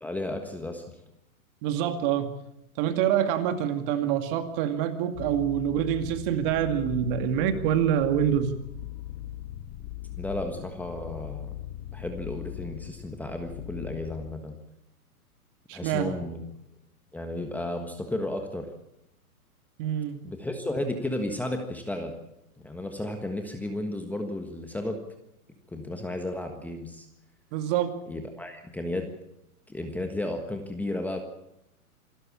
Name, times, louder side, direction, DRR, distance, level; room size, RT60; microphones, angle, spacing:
voice 1, 0.0-0.8 10.2-11.5 11.9-14.6 15.7-16.4 17.1-18.7 20.2-22.1 22.6-25.0 25.7-27.1 28.1-29.1 29.7-31.2, left 1 dB, 5° left, 4 dB, 1.4 m, -33 dB
voice 2, 1.6-2.3 2.8-8.5 15.7-16.2 19.8-20.2 27.5-27.9, right 10 dB, 35° right, 8 dB, 2.3 m, -26 dB
sound 1, 5.1-14.3, left 13 dB, 35° left, 1.7 m, -40 dB
26.5 x 13.0 x 8.6 m, 0.83 s
hypercardioid pair, 135°, 44 cm